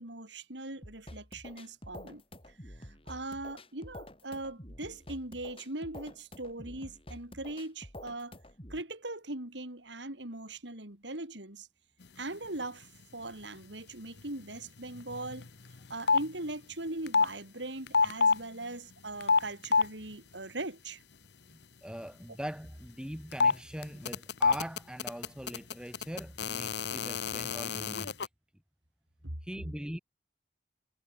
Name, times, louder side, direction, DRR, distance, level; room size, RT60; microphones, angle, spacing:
voice 1, 0.0-2.2 2.7-2.8 3.1-8.4 8.7-11.7 12.2-15.5 15.9-21.0 29.2-29.3, right 2 dB, 75° right, 3.8 m, -40 dB
sound 1, 0.8-8.8, left 1 dB, 30° left, 7.3 m, -48 dB
sound 2, 15.0-15.5 15.7-16.3 17.1-17.3 17.9-18.4 19.2-19.9 23.3-23.5 23.8-28.3, left 4 dB, 65° left, 1.0 m, -27 dB
voice 2, 21.5-28.1 29.4-30.0, equal, 5° right, 1.3 m, -42 dB
head